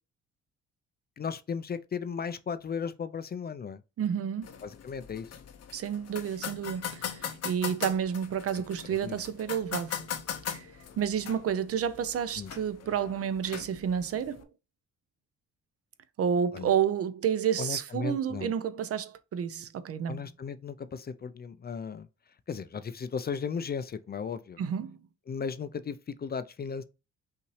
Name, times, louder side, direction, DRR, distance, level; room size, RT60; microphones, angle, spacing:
voice 1, 1.2-3.8 4.6-5.3 8.9-9.2 12.4-12.5 16.5-16.7 17.6-18.5 20.1-22.1 22.5-24.6 25.3-26.8, left 6 dB, 35° left, 0.5 m, -36 dB
voice 2, 4.0-4.5 5.7-10.1 10.5-10.7 11.0-14.5 16.2-20.3 24.6-25.0, right 8 dB, 50° right, 0.6 m, -30 dB
sound 1, 4.4-14.4, left 8 dB, 55° left, 0.8 m, -40 dB
5.6 x 2.7 x 3.1 m
cardioid pair, 90°, 30 cm